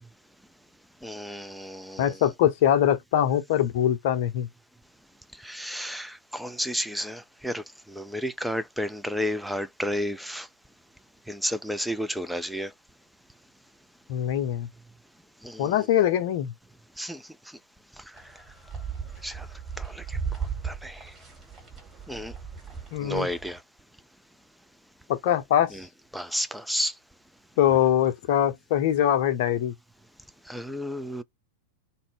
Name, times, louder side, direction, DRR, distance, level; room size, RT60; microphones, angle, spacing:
voice 1, 1.0-2.2 5.4-10.5 11.3-12.7 15.4-15.9 17.0-17.2 19.2-19.5 19.8-20.2 20.6-21.1 22.1-22.3 23.0-23.6 25.7-25.8 26.1-26.9 30.5-31.2, equal, ahead, 0.3 m, -32 dB
voice 2, 2.0-4.5 14.1-14.7 15.6-16.5 22.9-23.3 25.2-25.7 27.6-29.7, left 10 dB, 50° left, 0.7 m, -23 dB
sound 1, 18.1-23.6, right 6 dB, 20° right, 1.5 m, -37 dB
2.5 x 2.1 x 3.4 m
figure-of-eight pair, 90°, 0 cm